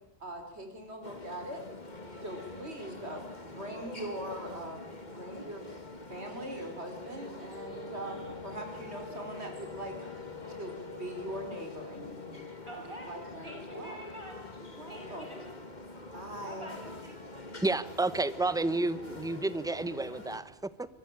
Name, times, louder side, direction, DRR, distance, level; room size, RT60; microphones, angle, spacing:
voice 1, 0.2-1.6 2.2-4.8 5.1-5.8 6.1-10.0 10.5-12.5 13.1-14.0 14.8-15.4 16.1-16.7, right 1 dB, 80° right, 4 dB, 4.8 m, -41 dB
sound 1, 1.0-20.4, left 2 dB, 40° left, 2.5 m, -45 dB
Wind instrument woodwind instrument, 7.5-13.2, left 6 dB, 65° left, 3.1 m, -47 dB
voice 2, 12.7-13.2 13.4-15.6 16.5-16.9, right 1 dB, 25° right, 0 dB, 7.6 m, -46 dB
voice 3, 17.6-20.9, right 2 dB, 5° right, 15 dB, 1.0 m, -31 dB
25.0 x 22.0 x 8.8 m, 0.82 s
omnidirectional pair, 1.1 m